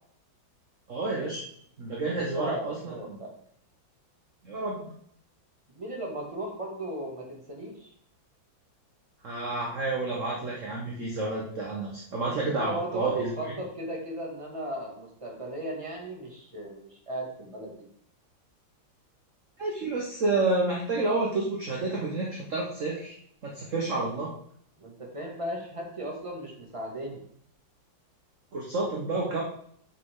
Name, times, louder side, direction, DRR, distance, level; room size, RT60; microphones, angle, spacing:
voice 1, 0.9-1.4 1.8-3.2 4.4-4.9 9.2-13.5 19.6-23.2 23.4-24.3 28.5-29.4, right 3 dB, 45° right, -2 dB, 1.5 m, -30 dB
voice 2, 2.1-3.3 5.7-7.9 12.5-17.8 24.8-27.2, right 1 dB, 15° right, -2 dB, 2.2 m, -36 dB
8.4 x 6.6 x 3.8 m, 0.65 s
omnidirectional pair, 2.1 m